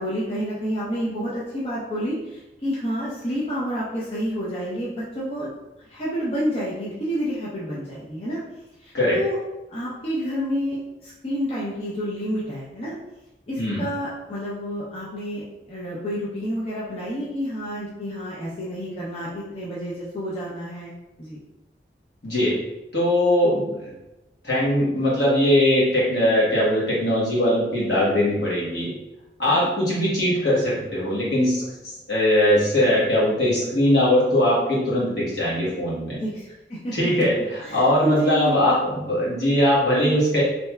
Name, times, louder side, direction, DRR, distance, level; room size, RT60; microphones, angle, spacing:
voice 1, 0.0-5.5 5.9-8.4 8.8-9.4 9.7-12.9 13.5-20.9 21.2-21.4 29.4-29.7 36.1-37.0 37.6-38.8, equal, 35° left, -8 dB, 0.5 m, -29 dB
voice 2, 22.2-22.6 22.9-23.9 24.4-28.9 29.4-31.6 32.1-36.2 36.9-40.4, left 1 dB, 70° left, -6 dB, 1.1 m, -20 dB
3.1 x 2.7 x 2.2 m, 0.99 s
head